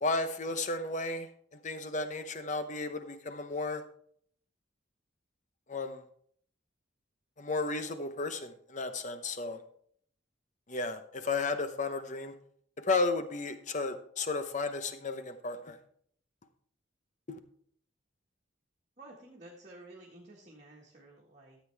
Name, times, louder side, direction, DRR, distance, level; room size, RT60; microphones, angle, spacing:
voice 1, 0.0-1.3 1.6-3.8 5.7-6.0 7.4-9.6 10.7-12.3 12.8-15.8 17.3-17.4, left 3 dB, 40° left, 10 dB, 0.8 m, -33 dB
voice 2, 19.0-21.6, right 2 dB, 35° right, -4 dB, 1.6 m, -52 dB
13.0 x 8.2 x 3.4 m, 0.62 s
head